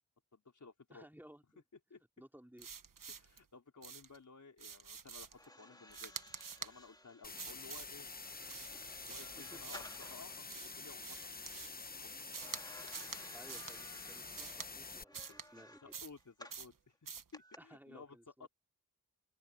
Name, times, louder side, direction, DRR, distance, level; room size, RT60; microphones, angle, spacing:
voice 1, 0.3-1.1 1.9-2.0 3.1-6.1 6.6-8.1 9.1-12.3 15.3-18.5, left 4 dB, 65° left, 4.4 m, -57 dB
voice 2, 0.9-1.6 2.2-2.7 9.4-9.7 13.3-15.9 17.6-18.5, equal, 5° right, 4.4 m, -58 dB
sound 1, 2.6-3.4 3.8-4.2 4.6-5.4 5.9-6.7 7.4-7.9 8.5-10.0 10.5-11.8 12.3-12.6 12.9-13.2 13.5-13.8 14.4-14.7 15.1-15.5 15.9-16.2 16.5-16.7 17.1-17.3, right 6 dB, 80° right, 1.2 m, -48 dB
sound 2, 5.3-10.4 12.4-16.7 17.3-17.6, left 1 dB, 10° left, 2.4 m, -57 dB
sound 3, 7.2-15.0, left 3 dB, 30° left, 0.8 m, -48 dB
open air
wide cardioid pair, 85°, 33 cm